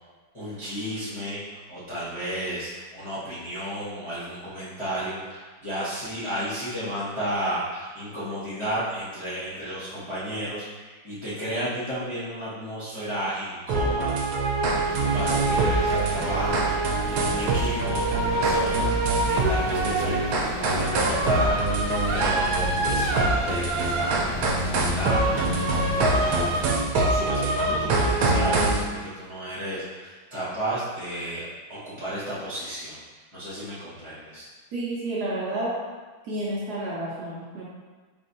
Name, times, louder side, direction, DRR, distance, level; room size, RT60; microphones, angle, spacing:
voice 1, 0.3-21.8 22.1-33.0 33.3-34.5, right 1 dB, 20° left, -12 dB, 0.8 m, -33 dB
sound 1, 13.7-28.8, right 2 dB, 85° right, 1.4 m, -24 dB
sound 2, 14.9-26.7, left 1 dB, 80° left, 1.7 m, -36 dB
voice 2, 34.7-35.7 36.2-37.7, right 1 dB, 65° right, -6 dB, 1.1 m, -30 dB
4.6 x 3.5 x 2.6 m, 1.4 s
omnidirectional pair, 2.1 m